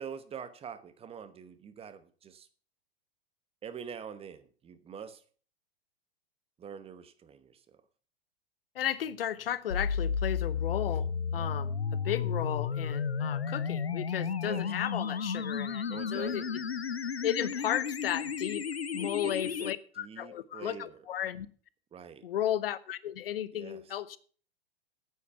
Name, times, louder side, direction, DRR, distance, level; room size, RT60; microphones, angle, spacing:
voice 1, 0.0-2.5 3.6-5.2 6.6-7.6 14.4-14.7 15.9-16.5 18.9-21.0 21.9-22.3 23.5-23.8, right 7 dB, 20° right, 1.0 m, -45 dB
voice 2, 8.7-11.8 12.0-16.6 17.2-18.7 18.9-21.5 22.2-24.2, left 11 dB, 65° left, 0.9 m, -34 dB
sound 1, 9.7-19.7, left 6 dB, 90° left, 0.7 m, -33 dB
9.4 x 8.6 x 6.7 m
figure-of-eight pair, 100°, 31 cm